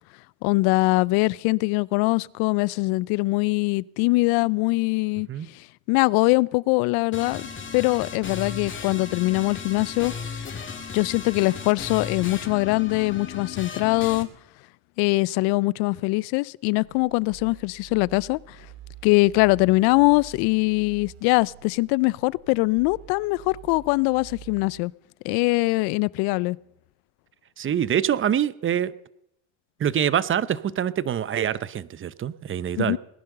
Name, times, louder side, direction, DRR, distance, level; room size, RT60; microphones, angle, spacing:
voice 1, 0.4-5.3 5.5-10.5 10.9-14.3 15.0-18.6 19.0-24.9 25.2-26.6 32.8-33.0, left 23 dB, 70° left, 0.5 m, -22 dB
sound 1, 7.1-14.2, left 6 dB, 30° left, 2.4 m, -36 dB
sound 2, 16.7-24.8, right 11 dB, 75° right, 2.0 m, -47 dB
voice 2, 27.6-28.9 29.8-33.0, right 9 dB, 30° right, 0.8 m, -25 dB
20.0 x 10.5 x 6.7 m
supercardioid pair, 90°, 40 cm